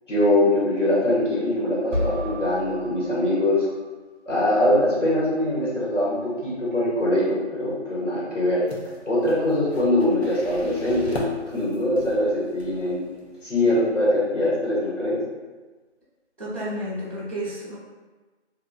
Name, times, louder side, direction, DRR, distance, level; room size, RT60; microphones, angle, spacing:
voice 1, 0.1-3.7 4.3-8.6 9.0-13.0 13.4-15.2, left 1 dB, 90° left, -7 dB, 1.3 m, -22 dB
sound 1, 1.9-3.9, left 1 dB, 85° right, 0.7 m, -32 dB
sound 2, 8.6-13.6, left 1 dB, 60° left, 0.7 m, -40 dB
voice 2, 16.4-17.8, equal, 45° right, -12 dB, 0.7 m, -31 dB
2.6 x 2.5 x 2.3 m, 1.3 s
figure-of-eight pair, 180°, 36 cm